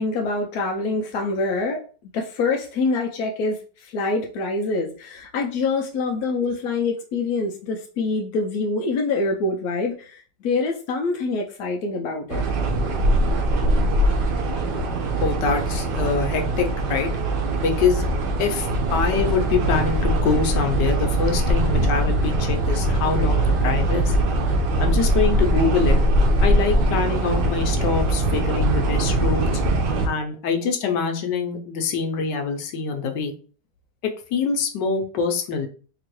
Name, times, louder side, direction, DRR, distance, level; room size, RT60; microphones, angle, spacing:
voice 1, 0.0-1.8 2.1-12.4, left 3 dB, 70° left, 1 dB, 1.0 m, -25 dB
sound 1, 12.3-30.1, right 1 dB, 90° right, 1.4 m, -21 dB
voice 2, 15.2-17.1 17.6-18.1 18.4-24.1 24.8-26.0 26.4-29.5 30.1-33.3 34.3-35.7, left 5 dB, 85° left, 4 dB, 1.3 m, -24 dB
3.7 x 2.9 x 3.0 m, 0.39 s
omnidirectional pair, 1.8 m